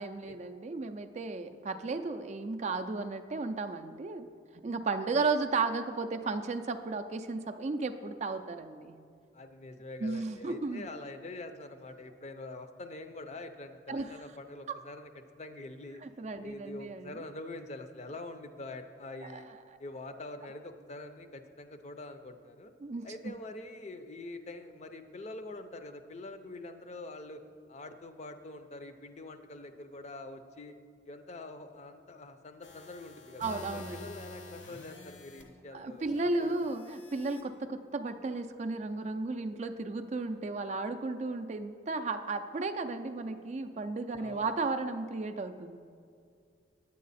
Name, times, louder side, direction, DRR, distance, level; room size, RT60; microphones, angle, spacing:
voice 1, 0.0-4.3 4.5-9.0 10.0-10.9 13.9-14.1 14.7-14.8 16.0-17.1 19.2-19.4 22.8-23.3 33.4-34.0 35.7-45.8, right 3 dB, 35° right, 8 dB, 0.4 m, -34 dB
voice 2, 9.3-16.0 16.4-19.5 19.8-22.7 23.0-27.4 27.7-30.7 31.0-36.5 44.2-44.5, left 2 dB, 35° left, 8 dB, 0.5 m, -45 dB
sound 1, 32.6-35.4 36.4-37.4, left 2 dB, 80° left, 1.2 m, -48 dB
9.5 x 8.4 x 4.1 m, 2.4 s
head